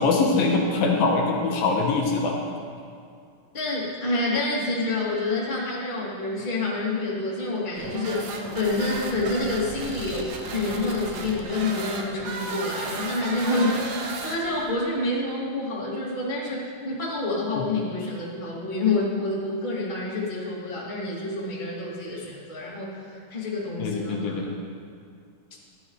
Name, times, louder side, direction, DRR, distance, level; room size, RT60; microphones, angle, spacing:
voice 1, 0.0-2.4 17.6-17.7 23.8-24.5, left 3 dB, 80° left, 0 dB, 2.6 m, -23 dB
voice 2, 3.5-24.4, left 2 dB, 15° left, -8 dB, 2.0 m, -28 dB
sound 1, 7.8-14.8, right 3 dB, 75° right, 1.7 m, -34 dB
14.0 x 11.5 x 3.2 m, 2.3 s
omnidirectional pair, 4.3 m